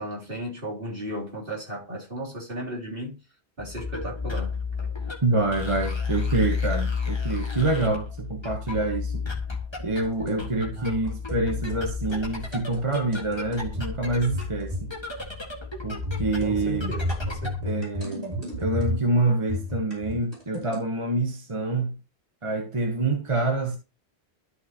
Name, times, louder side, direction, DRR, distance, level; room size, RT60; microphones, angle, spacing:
voice 1, 0.0-3.2 3.6-4.6 10.8-11.1 16.4-17.5, equal, 55° right, 3.6 m, -35 dB
sound 1, 3.6-17.7, left 5 dB, 25° left, 1.8 m, -32 dB
voice 2, 5.2-9.2 9.8-14.9 15.8-16.9 17.6-22.0 22.4-23.8, right 2 dB, 30° right, 1.2 m, -26 dB
sound 2, 10.0-10.4 11.1-11.4 11.7-11.8 12.1-12.2 12.5-13.9 14.3-14.9 15.2-15.4 16.0-19.1 19.5-20.8, left 1 dB, 80° right, 4.5 m, -32 dB
12.5 x 5.9 x 2.9 m
omnidirectional pair, 1.1 m